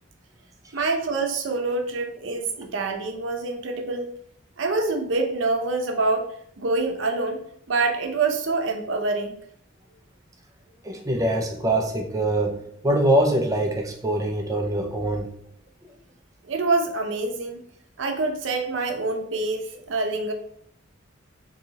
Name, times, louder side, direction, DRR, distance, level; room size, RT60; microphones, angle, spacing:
voice 1, 0.7-4.1 4.6-6.3 6.6-7.4 7.7-9.4 16.4-17.6 18.0-20.3, right 3 dB, 70° right, 4 dB, 0.6 m, -26 dB
voice 2, 10.8-15.3, right 1 dB, 15° right, 3 dB, 0.4 m, -23 dB
3.9 x 2.7 x 2.8 m, 0.66 s
head